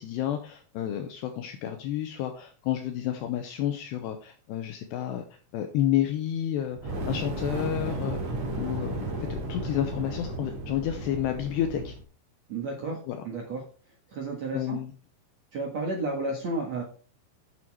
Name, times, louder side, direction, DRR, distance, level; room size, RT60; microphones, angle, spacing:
voice 1, 0.0-5.2 5.5-8.2 8.5-9.0 9.3-11.9 13.1-13.2 14.5-14.9, left 11 dB, 80° left, 6 dB, 2.5 m, -30 dB
Fire, 6.7-12.0, right 1 dB, 45° right, 2.9 m, -34 dB
voice 2, 12.5-13.0 13.2-13.6 14.1-14.8 15.5-16.8, right 2 dB, 70° right, 0 dB, 1.6 m, -32 dB
8.5 x 7.5 x 4.6 m, 0.39 s
omnidirectional pair, 5.6 m